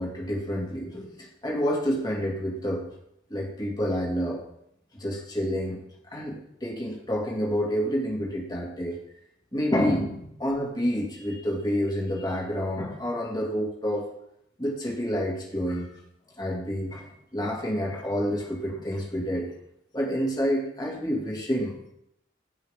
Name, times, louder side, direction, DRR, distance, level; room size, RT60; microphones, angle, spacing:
voice 1, 0.0-2.8 3.3-4.4 4.9-5.8 6.1-9.0 9.5-14.0 14.6-15.9 16.4-17.0 17.3-19.5 19.9-21.9, equal, 25° left, -3 dB, 2.3 m, -28 dB
15.5 x 5.5 x 3.7 m, 0.77 s
head